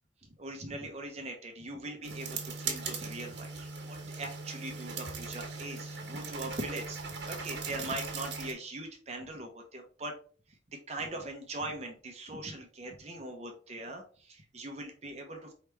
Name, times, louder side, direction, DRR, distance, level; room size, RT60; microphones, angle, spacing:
voice 1, 0.4-7.0 7.3-10.1 10.9-15.5, right 2 dB, 35° right, 3 dB, 0.8 m, -41 dB
sound 1, 2.0-8.5, right 4 dB, 80° right, 1.3 m, -39 dB
4.7 x 3.4 x 3.2 m, 0.40 s
head